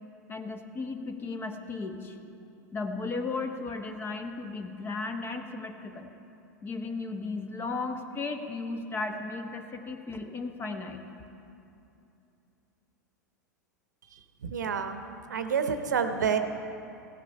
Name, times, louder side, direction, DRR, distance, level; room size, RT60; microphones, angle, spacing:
voice 1, 0.3-2.2 2.7-6.1 6.6-11.0, left 3 dB, 25° left, 6 dB, 1.1 m, -35 dB
voice 2, 14.4-15.0 15.3-16.4, right 6 dB, 70° right, 8 dB, 0.8 m, -28 dB
16.0 x 8.9 x 5.5 m, 2.7 s
figure-of-eight pair, 90°, 10 cm